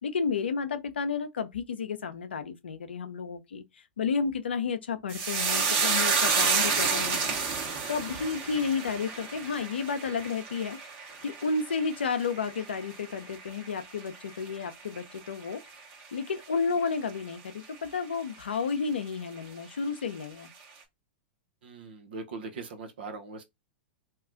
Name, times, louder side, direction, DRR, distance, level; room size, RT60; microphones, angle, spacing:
voice 1, 0.0-7.3 7.9-10.8 11.2-15.6 16.1-20.5, left 5 dB, 85° left, 0.6 m, -32 dB
sound 1, 5.1-13.7 14.0-14.7 15.0-15.2, right 5 dB, 40° right, 1.3 m, -30 dB
voice 2, 21.6-23.4, right 4 dB, 75° right, 0.9 m, -40 dB
2.9 x 2.3 x 3.6 m
hypercardioid pair, 105°, 6 cm